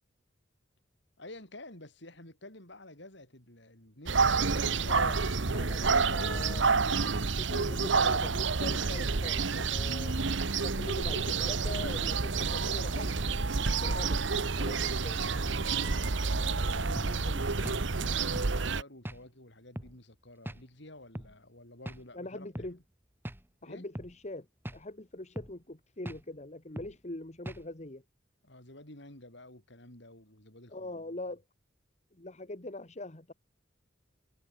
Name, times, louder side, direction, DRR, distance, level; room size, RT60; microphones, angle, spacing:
voice 1, 1.2-6.9 14.5-22.8 23.6-23.8 28.4-31.2, left 1 dB, 60° left, 6.8 m, -51 dB
sound 1, 4.1-18.8, right 4 dB, 65° right, 1.2 m, -29 dB
voice 2, 4.9-5.2 5.5-6.7 7.4-10.1 10.6-14.2 14.6-15.2 22.1-22.8 23.6-24.5 24.7-28.0 30.7-31.4 32.1-33.3, left 2 dB, 35° left, 1.7 m, -42 dB
sound 2, 17.0-17.1 17.6-17.8 18.4-18.5 19.0-19.2 19.8-19.9 20.5-20.6 21.1-21.3 21.9-22.0 22.5-22.7 23.2-23.4 23.9-24.1 24.6-24.8 25.4-25.6 26.0-26.2 26.8-26.9 27.5-27.7, equal, 10° right, 1.3 m, -41 dB
head